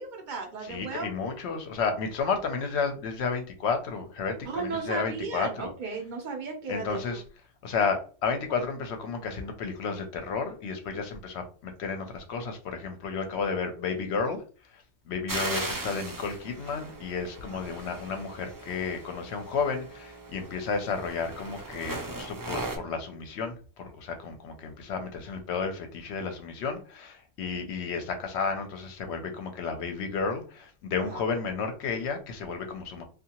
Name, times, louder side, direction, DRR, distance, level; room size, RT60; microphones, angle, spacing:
voice 1, 0.0-1.1 4.4-7.2 17.5-17.6 31.0-31.2, right 4 dB, 50° right, 3 dB, 0.7 m, -35 dB
voice 2, 0.6-5.7 6.7-7.2 7.6-33.0, left 5 dB, 70° left, 6 dB, 0.8 m, -32 dB
sound 1, 15.3-22.8, right 2 dB, 30° right, 0.3 m, -38 dB
2.7 x 2.3 x 2.8 m, 0.38 s
omnidirectional pair, 1.2 m